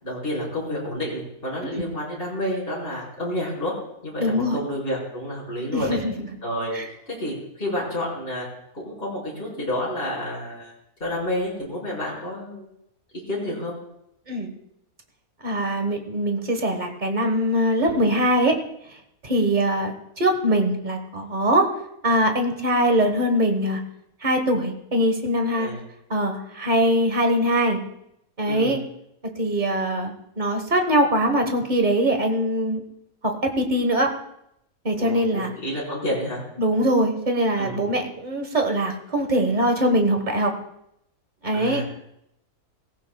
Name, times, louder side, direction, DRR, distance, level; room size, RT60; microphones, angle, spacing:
voice 1, 0.0-3.7 4.0-6.0 6.4-6.7 7.1-8.5 8.7-10.7 11.0-12.7 13.3-13.7 17.9-18.0 25.5-25.8 28.5-28.8 35.0-36.4 37.5-37.9 41.5-41.8, left 1 dB, 40° left, -6 dB, 5.3 m, -29 dB
voice 2, 4.2-4.6 5.7-6.1 6.7-6.9 14.3-14.5 15.4-18.5 19.2-21.7 22.0-23.8 24.2-25.7 26.1-27.8 28.4-28.8 29.4-32.8 33.2-34.1 34.8-35.5 36.6-40.5 41.4-41.8, right 1 dB, 30° right, 4 dB, 1.5 m, -22 dB
17.5 x 16.0 x 2.3 m, 0.79 s
omnidirectional pair, 1.5 m